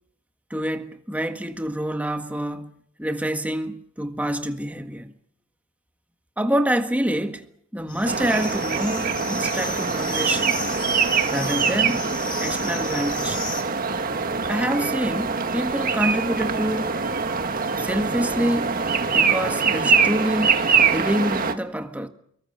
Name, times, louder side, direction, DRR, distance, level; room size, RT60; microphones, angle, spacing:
voice 1, 0.5-2.7 3.0-5.1 6.4-7.5 7.7-10.6 11.3-12.1 12.4-13.5 14.4-17.0 17.8-18.8 19.1-20.6 20.9-22.1, equal, 5° right, 1.7 m, -26 dB
sound 1, 7.9-13.6, left 4 dB, 25° left, 3.6 m, -34 dB
sound 2, 8.0-21.5, right 5 dB, 45° right, 1.6 m, -23 dB
25.5 x 22.5 x 6.8 m
head